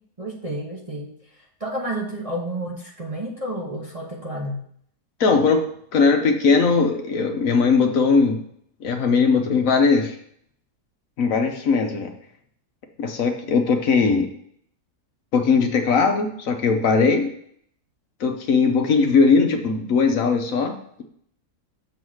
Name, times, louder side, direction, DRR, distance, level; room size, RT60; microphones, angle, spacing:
voice 1, 0.2-4.6, right 1 dB, 25° right, -2 dB, 0.9 m, -31 dB
voice 2, 5.2-8.4 8.8-10.1 11.2-12.1 13.0-14.3 15.3-17.3 18.2-21.0, left 4 dB, 65° left, 4 dB, 1.2 m, -19 dB
6.9 x 4.0 x 6.2 m, 0.65 s
omnidirectional pair, 1.6 m